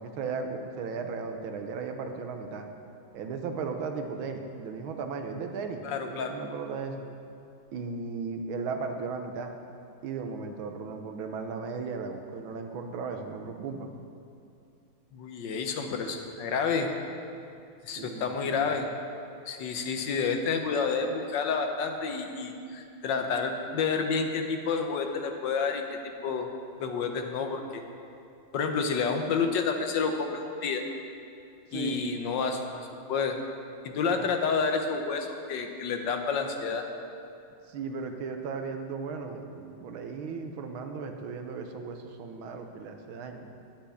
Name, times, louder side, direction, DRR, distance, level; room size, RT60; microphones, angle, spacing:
voice 1, 0.0-2.7 3.1-7.0 7.7-9.5 10.0-13.9 18.0-18.7 31.7-32.0 34.1-34.3 37.7-43.5, right 5 dB, 80° right, 5 dB, 1.7 m, -36 dB
voice 2, 5.8-6.4 15.1-16.9 17.8-18.9 19.5-26.5 26.8-27.8 28.5-30.8 31.7-33.4 33.8-36.8, left 5 dB, 65° left, 4 dB, 1.5 m, -29 dB
10.5 x 5.9 x 8.3 m, 2.6 s
omnidirectional pair, 2.2 m